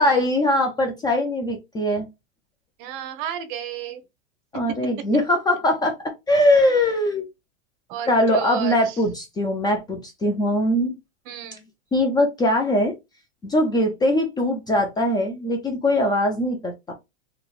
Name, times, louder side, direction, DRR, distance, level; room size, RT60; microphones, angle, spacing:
voice 1, 0.0-2.1 4.5-6.0 6.3-7.3 8.1-11.0 11.9-12.9 13.4-16.9, left 1 dB, 15° left, 0.4 m, -21 dB
voice 2, 2.8-4.0 4.7-4.8 7.9-8.9 11.3-11.7, right 8 dB, 50° right, 0.8 m, -32 dB
2.9 x 2.9 x 2.3 m
supercardioid pair, 135°, 31 cm